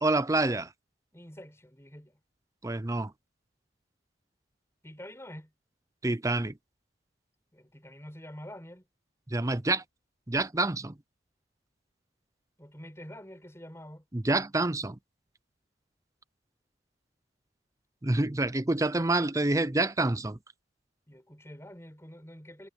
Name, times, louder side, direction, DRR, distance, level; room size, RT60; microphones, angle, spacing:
voice 1, 0.0-0.7 2.6-3.1 6.0-6.5 9.3-9.8 10.3-10.9 14.1-15.0 18.0-20.4, right 2 dB, 15° right, 0.6 m, -27 dB
voice 2, 1.1-2.2 4.8-5.5 7.5-8.8 12.6-14.0 21.1-22.7, equal, 15° left, 6.1 m, -47 dB
head